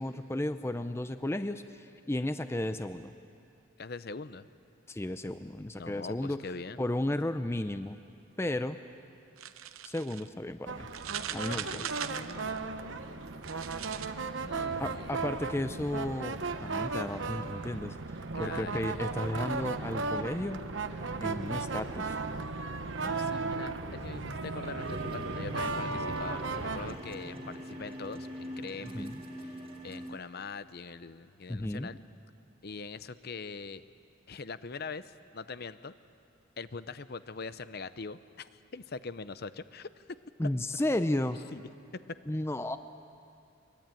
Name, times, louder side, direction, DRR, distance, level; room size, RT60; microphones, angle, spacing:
voice 1, 0.0-3.1 4.9-6.4 6.8-8.0 8.4-8.8 9.8-10.9 11.3-11.8 14.8-18.0 18.4-20.6 21.2-22.2 28.8-29.2 31.5-31.9 40.4-41.4 42.3-42.8, left 1 dB, 10° left, 10 dB, 0.5 m, -33 dB
voice 2, 3.8-4.5 5.8-6.8 11.4-12.5 14.4-15.2 18.3-18.8 23.0-32.0 32.6-33.8 34.3-35.9 36.6-40.0 41.5-41.6, left 4 dB, 50° left, 13 dB, 0.7 m, -43 dB
sound 1, 9.4-10.3 10.9-12.6 13.3-14.1, right 10 dB, 90° right, 0.8 m, -40 dB
sound 2, 10.7-27.0, right 3 dB, 65° right, 1.0 m, -36 dB
sound 3, 24.8-30.1, equal, 30° right, 2.3 m, -43 dB
23.5 x 22.5 x 9.1 m, 2.7 s
head